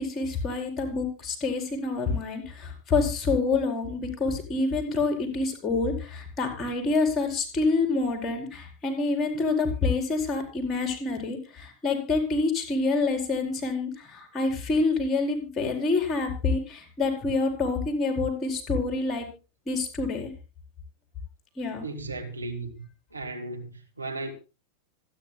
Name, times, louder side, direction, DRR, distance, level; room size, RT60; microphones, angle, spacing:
voice 1, 0.0-19.3 19.7-20.3 21.6-21.9, left 3 dB, 20° left, 4.6 m, -27 dB
voice 2, 21.8-24.3, right 2 dB, 80° right, 2.1 m, -36 dB
26.0 x 9.9 x 2.3 m
figure-of-eight pair, 90°, 0 cm